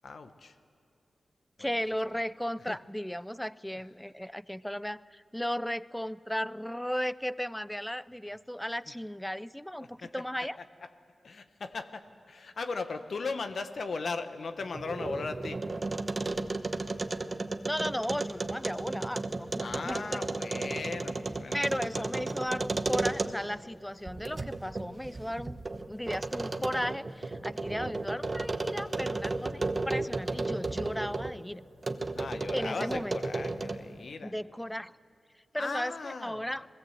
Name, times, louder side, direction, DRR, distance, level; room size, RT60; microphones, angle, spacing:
voice 1, 0.0-0.5 1.6-1.7 2.7-2.8 3.7-3.8 9.8-10.1 11.2-15.6 19.6-22.0 32.2-34.4 35.6-36.5, left 4 dB, 70° left, 8 dB, 1.1 m, -38 dB
voice 2, 1.6-10.6 17.7-20.2 21.5-25.6 25.9-31.7 32.5-33.2 34.2-34.9 35.5-36.7, equal, 5° left, 18 dB, 0.5 m, -35 dB
sound 1, 14.6-23.6 24.1-31.4 31.8-33.9, right 2 dB, 45° right, 1.1 m, -34 dB
21.0 x 17.0 x 8.0 m, 2.3 s
cardioid pair, 45°, 0 cm